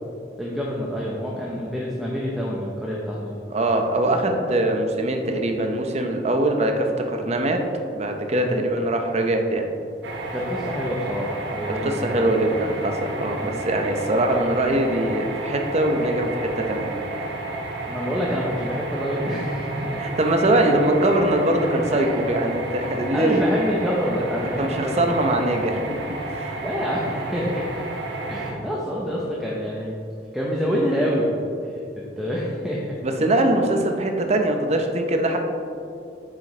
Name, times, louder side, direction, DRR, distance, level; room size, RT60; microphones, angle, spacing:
voice 1, 0.4-3.4 8.3-8.6 10.3-12.1 13.4-13.6 17.9-20.0 21.9-22.1 23.1-25.2 26.5-27.9 28.3-30.0 30.3-31.3 31.6-33.0, equal, ahead, -5 dB, 0.7 m, -27 dB
voice 2, 3.5-9.7 11.8-16.9 20.0-23.4 24.6-26.6 33.0-35.4, right 1 dB, 40° right, 4 dB, 0.7 m, -22 dB
sound 1, 10.0-28.5, right 2 dB, 80° right, 1.0 m, -32 dB
8.4 x 6.2 x 3.2 m, 2.5 s
head